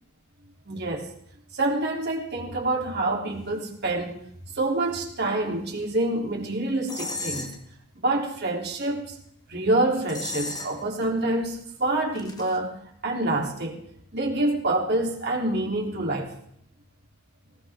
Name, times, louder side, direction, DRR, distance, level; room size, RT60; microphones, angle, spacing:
voice 1, 0.6-1.1 1.5-4.2 4.5-7.5 8.0-9.2 9.5-12.7 13.0-13.8 14.1-16.3, right 2 dB, 50° right, 0 dB, 3.3 m, -26 dB
sound 1, 6.9-7.6 10.1-11.0 12.2-12.6, left 2 dB, 20° left, 1.6 m, -34 dB
18.5 x 18.5 x 3.7 m, 0.69 s
head